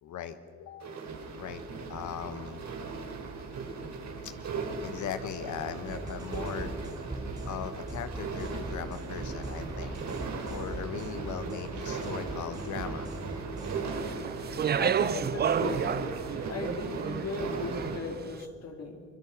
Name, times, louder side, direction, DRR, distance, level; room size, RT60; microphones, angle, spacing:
voice 1, 0.0-1.1 1.4-1.6 1.9-2.6 4.2-4.3 4.8-6.7 7.4-10.0 10.5-13.1, left 9 dB, 75° left, 10 dB, 1.3 m, -39 dB
sound 1, 0.8-18.0, right 4 dB, 65° right, 3.7 m, -38 dB
sound 2, 5.9-13.8, right 1 dB, 15° right, 2.6 m, -41 dB
Speech, 13.9-18.2, right 8 dB, 35° right, 0.4 m, -31 dB
voice 2, 14.8-19.0, left 3 dB, 55° left, 3 dB, 2.9 m, -37 dB
24.0 x 20.0 x 6.0 m, 2.1 s
cardioid pair, 90°, 30 cm